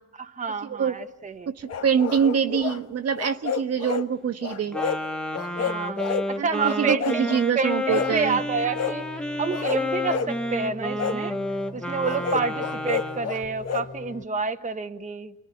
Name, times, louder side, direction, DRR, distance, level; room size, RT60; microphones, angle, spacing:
voice 1, 0.1-1.5 5.6-7.3 7.5-11.4 11.7-15.3, right 4 dB, 25° right, 7 dB, 1.2 m, -29 dB
voice 2, 1.5-4.8 6.4-8.4, right 7 dB, 55° right, 8 dB, 1.4 m, -25 dB
sound 1, 1.7-2.8 3.2-4.1 4.4-5.0 5.3-6.3 6.6-7.4 7.9-8.2 8.7-9.0 9.5-10.3 11.0-11.2 12.0-13.9, left 6 dB, 55° left, 1.9 m, -30 dB
Wind instrument woodwind instrument, 4.7-13.3, left 1 dB, 5° left, 1.6 m, -30 dB
sound 2, 7.9-14.2, left 2 dB, 25° left, 1.8 m, -41 dB
27.5 x 21.5 x 9.9 m, 0.98 s
cardioid pair, 90°, 30 cm